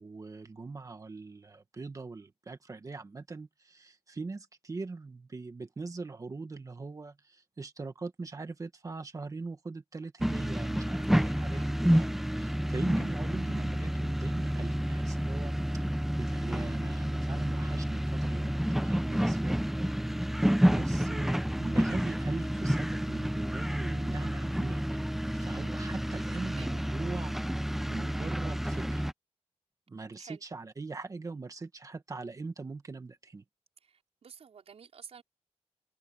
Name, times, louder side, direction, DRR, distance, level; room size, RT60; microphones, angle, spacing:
voice 1, 0.0-12.1 12.4-15.8 16.2-20.0 20.3-24.9 25.3-29.1 29.9-33.4, right 3 dB, 30° right, 1.7 m, -41 dB
sound 1, 10.2-29.1, equal, ahead, 0.8 m, -29 dB
voice 2, 11.1-11.7 26.5-26.7 30.2-30.4 33.8-35.2, right 7 dB, 65° right, 4.9 m, -51 dB
wide cardioid pair, 165°, 11 cm